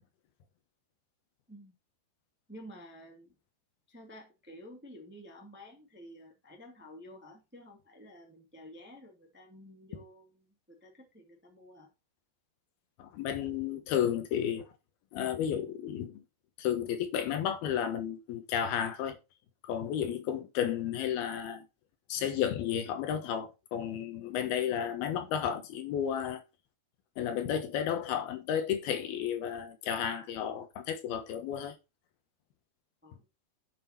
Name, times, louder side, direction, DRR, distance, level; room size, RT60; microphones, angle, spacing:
voice 1, 2.5-3.4 3.9-11.9 33.0-33.3, equal, 5° right, 1.5 m, -51 dB
voice 2, 13.0-14.7 15.1-16.2 16.6-19.2 19.6-21.7 22.1-26.4 27.2-31.8, left 9 dB, 70° left, 2.8 m, -32 dB
8.1 x 7.8 x 4.3 m
omnidirectional pair, 5.0 m